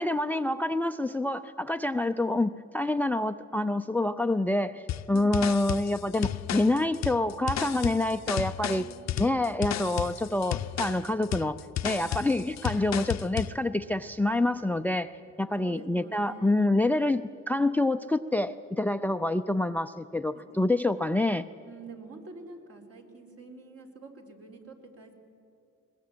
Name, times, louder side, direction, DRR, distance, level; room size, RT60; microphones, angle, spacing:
voice 1, 0.0-8.9 9.2-15.1 15.4-21.4, left 2 dB, 5° left, 12 dB, 0.5 m, -27 dB
sound 1, 4.9-13.6, left 12 dB, 65° left, 0.7 m, -33 dB
voice 2, 8.7-9.1 15.6-16.6 20.3-21.2 21.6-25.1, right 3 dB, 50° right, 2 dB, 4.0 m, -47 dB
21.5 x 20.5 x 8.6 m, 2.7 s
cardioid pair, 90°, 30 cm